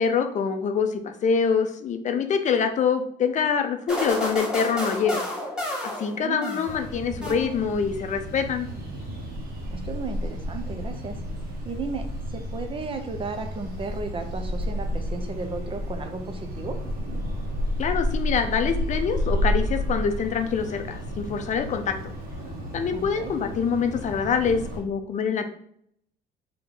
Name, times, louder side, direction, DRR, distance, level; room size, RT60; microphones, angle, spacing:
voice 1, 0.0-5.2 5.8-8.7 17.8-21.9 22.7-25.4, left 6 dB, 45° left, 7 dB, 0.5 m, -25 dB
sound 1, 3.9-6.8 7.2-7.9, left 1 dB, 5° right, 1.6 m, -31 dB
voice 2, 6.1-6.6 9.7-11.2 11.6-16.8 22.9-23.3, right 3 dB, 30° right, 6 dB, 0.6 m, -34 dB
sound 2, 6.7-24.8, equal, 65° right, 1.3 m, -31 dB
3.5 x 2.8 x 3.9 m, 0.67 s
cardioid pair, 110°, 17 cm